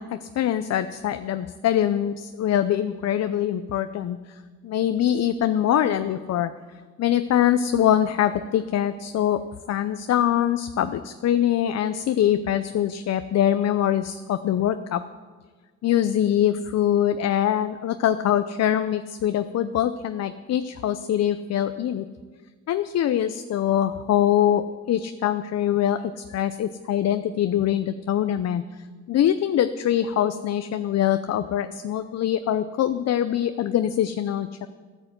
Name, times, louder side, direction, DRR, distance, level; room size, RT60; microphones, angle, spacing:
voice 1, 0.0-6.5 7.0-9.4 9.7-15.0 15.8-22.0 22.7-26.0 26.3-28.6 29.1-34.7, left 10 dB, 60° left, 11 dB, 0.6 m, -23 dB
13.0 x 8.9 x 8.0 m, 1.5 s
cardioid pair, 90°, 30 cm